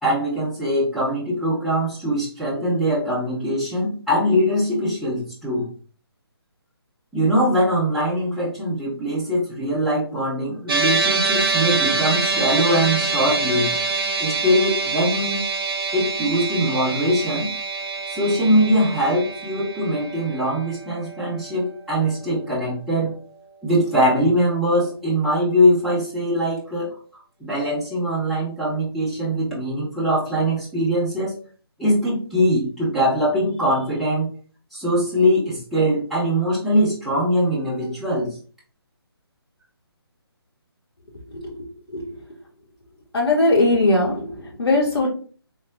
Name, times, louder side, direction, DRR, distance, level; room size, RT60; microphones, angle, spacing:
voice 1, 0.0-5.7 7.1-13.7 14.2-15.4 15.9-17.5 18.1-23.2 23.6-27.0 27.4-31.3 31.8-34.3 34.7-38.3, equal, ahead, -10 dB, 0.9 m, -22 dB
sound 1, 10.7-23.1, right 4 dB, 60° right, 0.8 m, -26 dB
voice 2, 43.1-45.1, left 2 dB, 70° left, -1 dB, 1.4 m, -19 dB
3.5 x 3.2 x 2.2 m, 0.40 s
figure-of-eight pair, 150°, 13 cm